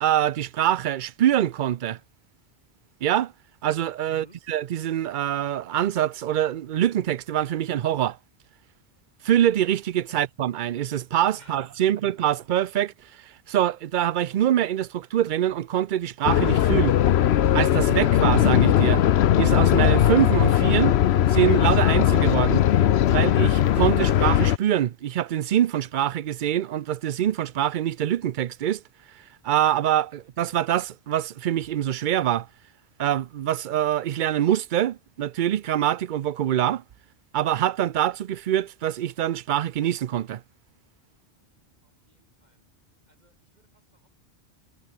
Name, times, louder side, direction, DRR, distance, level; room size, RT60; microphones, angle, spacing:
voice 1, 0.0-2.0 3.0-3.3 3.6-8.2 9.2-12.9 13.2-17.0 17.5-19.0 19.4-21.0 21.3-22.7 23.1-28.8 29.4-32.5 33.0-36.8 37.3-40.4, right 11 dB, 55° right, 0.6 m, -24 dB
voice 2, 4.1-4.4 10.1-10.3 11.4-12.3 42.1-42.6 43.1-44.1, right 1 dB, 40° right, 7.2 m, -55 dB
sound 1, 16.3-24.6, left 11 dB, 75° left, 0.9 m, -19 dB
omnidirectional pair, 1.1 m